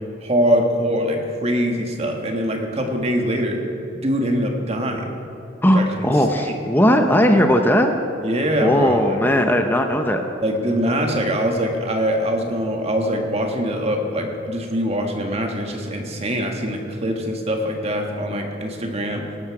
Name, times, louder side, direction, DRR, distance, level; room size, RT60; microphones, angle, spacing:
voice 1, 0.2-3.6 4.0-5.1 5.7-5.8 6.1-6.5 8.2-9.2 10.4-19.2, equal, 30° right, 2 dB, 1.7 m, -23 dB
voice 2, 5.6-7.9 8.6-10.2, equal, 10° left, 5 dB, 0.7 m, -17 dB
18.5 x 12.5 x 4.9 m, 2.9 s
head